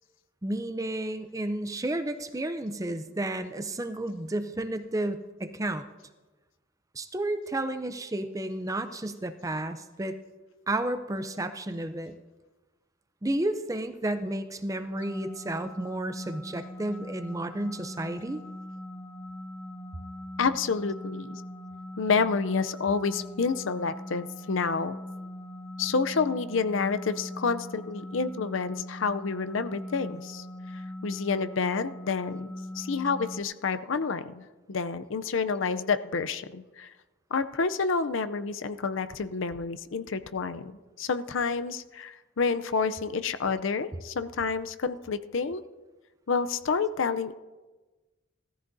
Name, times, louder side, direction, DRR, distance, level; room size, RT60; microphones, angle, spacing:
voice 1, 0.4-5.9 6.9-10.2 10.7-12.2 13.2-18.4, right 1 dB, 15° right, 9 dB, 0.5 m, -32 dB
sound 1, 14.9-33.4, left 1 dB, 5° left, 0.9 m, -41 dB
voice 2, 20.4-21.4 22.0-25.0 25.8-30.4 30.7-36.9 37.3-45.6 46.3-47.3, left 5 dB, 70° left, 11 dB, 0.6 m, -29 dB
18.0 x 14.0 x 2.7 m, 1.2 s
head